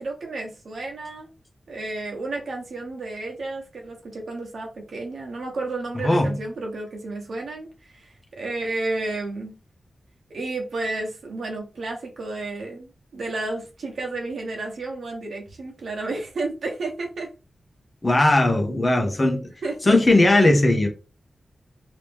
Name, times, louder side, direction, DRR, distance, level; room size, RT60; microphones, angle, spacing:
voice 1, 0.0-1.3 1.7-9.5 10.3-17.3 19.6-20.0, right 2 dB, 75° right, 1.1 m, -32 dB
voice 2, 18.0-19.5 19.9-20.9, left 2 dB, 25° left, 0.9 m, -18 dB
3.0 x 2.9 x 3.5 m
wide cardioid pair, 155°, 0 cm